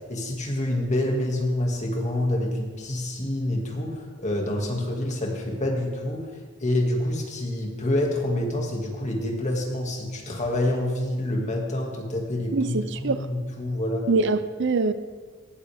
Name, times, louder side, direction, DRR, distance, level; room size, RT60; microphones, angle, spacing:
voice 1, 0.1-6.3 6.6-14.1, left 1 dB, 35° left, 0 dB, 2.1 m, -27 dB
voice 2, 12.5-13.3 14.1-14.9, right 3 dB, 60° right, 12 dB, 0.6 m, -24 dB
18.0 x 12.5 x 3.5 m, 1.5 s
head